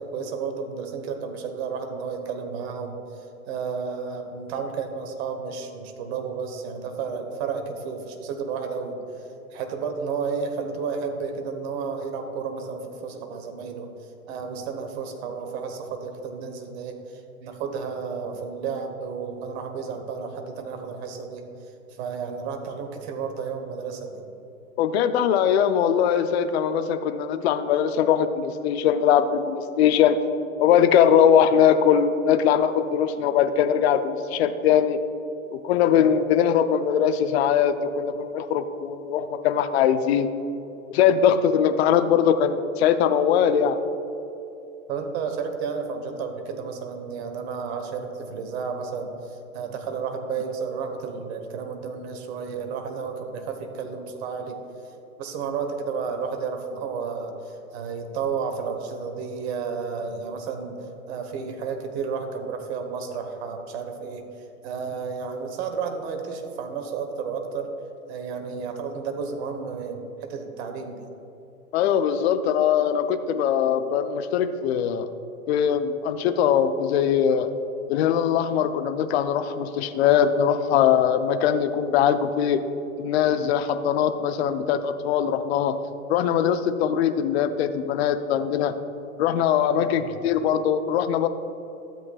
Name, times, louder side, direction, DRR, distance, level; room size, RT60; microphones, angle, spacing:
voice 1, 0.0-3.0 3.5-9.0 9.5-13.9 14.3-16.9 17.4-21.4 22.0-24.2 35.9-36.1 44.9-54.6 55.2-60.8 61.1-64.3 64.6-67.7 68.1-71.1 89.8-90.1, right 5 dB, 45° right, 6 dB, 1.2 m, -32 dB
voice 2, 24.8-30.2 30.6-35.0 35.5-40.3 40.9-43.8 71.7-75.1 75.5-77.5 77.9-82.6 83.0-85.8 86.1-88.7 89.2-91.3, left 8 dB, 50° left, 10 dB, 0.6 m, -21 dB
12.5 x 8.1 x 2.3 m, 2.9 s
hypercardioid pair, 115°, 42 cm